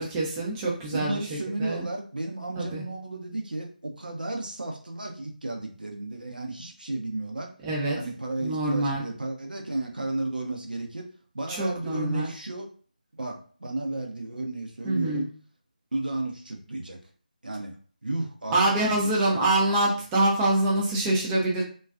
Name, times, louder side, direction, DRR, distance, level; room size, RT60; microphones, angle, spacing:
voice 1, 0.0-1.8 2.6-2.8 7.6-8.0 8.4-9.0 11.6-12.3 14.8-15.3 18.5-21.6, right 2 dB, 10° right, -4 dB, 0.4 m, -25 dB
voice 2, 0.9-7.5 7.9-11.1 11.3-12.7 13.2-15.3 15.9-17.0 17.4-17.8 18.0-18.6 18.9-19.5, right 2 dB, 70° right, 2 dB, 0.7 m, -33 dB
2.3 x 2.3 x 2.4 m, 0.43 s
figure-of-eight pair, 155°, 5 cm